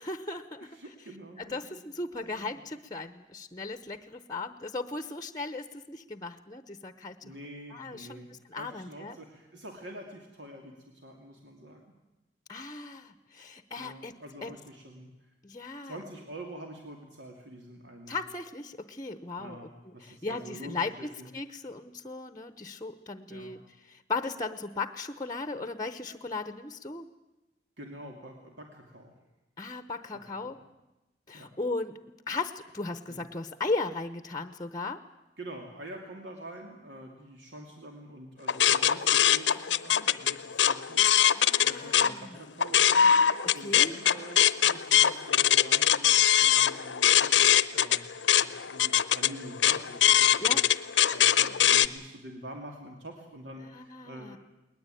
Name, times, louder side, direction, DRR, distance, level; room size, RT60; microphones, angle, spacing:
voice 1, 0.0-0.8 1.4-7.3 7.7-8.2 8.5-9.2 12.5-14.6 15.4-16.0 18.1-19.6 20.0-23.6 23.9-27.1 29.6-30.6 31.3-35.1 41.3-42.3 43.4-44.0 50.4-50.7 53.6-54.4, left 3 dB, 20° left, 11 dB, 0.9 m, -37 dB
voice 2, 0.6-1.8 2.2-2.6 7.2-11.8 13.8-15.3 15.8-18.2 19.4-21.3 23.3-23.6 27.8-29.2 30.1-30.6 31.3-31.5 33.1-33.2 35.4-50.6 51.1-54.4, right 1 dB, 80° right, 1 dB, 2.8 m, -46 dB
sound 1, 38.5-42.1 42.5-51.9, left 10 dB, 85° left, 0.7 m, -22 dB
20.0 x 20.0 x 9.1 m, 0.97 s
head